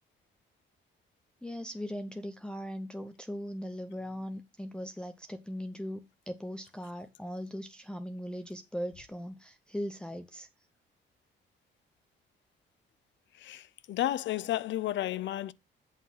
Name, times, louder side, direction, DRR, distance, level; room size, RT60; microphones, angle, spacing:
voice 1, 1.4-10.5, equal, 5° left, 0.7 m, -39 dB
voice 2, 13.4-15.5, left 13 dB, 70° left, 0.5 m, -32 dB
8.2 x 3.9 x 6.3 m
cardioid pair, 90°, 20 cm